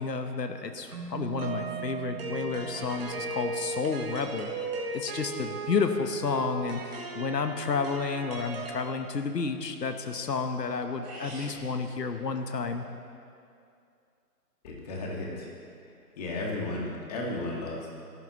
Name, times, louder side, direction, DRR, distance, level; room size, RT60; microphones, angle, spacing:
voice 1, 0.0-4.5 4.9-12.8, left 5 dB, 85° left, 7 dB, 1.2 m, -31 dB
Keyboard (musical), 0.9-4.2, right 9 dB, 65° right, 2.5 m, -43 dB
sound 1, 1.4-8.8, right 3 dB, 35° right, 1.7 m, -37 dB
sound 2, 11.0-11.6, right 1 dB, 5° right, 0.9 m, -43 dB
voice 2, 14.6-15.5 16.2-17.9, left 2 dB, 25° left, -2 dB, 2.0 m, -34 dB
24.5 x 12.0 x 3.1 m, 2.4 s
hypercardioid pair, 160°, 48 cm